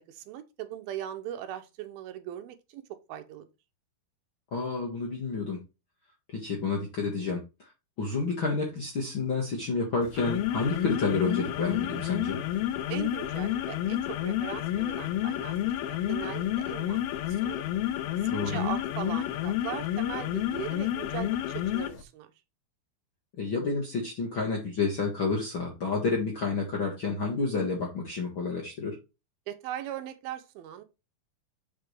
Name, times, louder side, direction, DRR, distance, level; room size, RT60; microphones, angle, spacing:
voice 1, 0.0-2.8 3.1-3.5 12.9-15.6 15.8-17.7 18.2-22.3 29.5-30.8, right 11 dB, 80° right, 2.6 m, -39 dB
voice 2, 4.5-5.6 6.3-7.7 8.0-12.4 18.3-18.6 23.4-29.0, left 4 dB, 55° left, 1.5 m, -30 dB
sound 1, 10.0-22.0, left 12 dB, 85° left, 2.6 m, -30 dB
6.7 x 5.6 x 3.2 m
omnidirectional pair, 4.4 m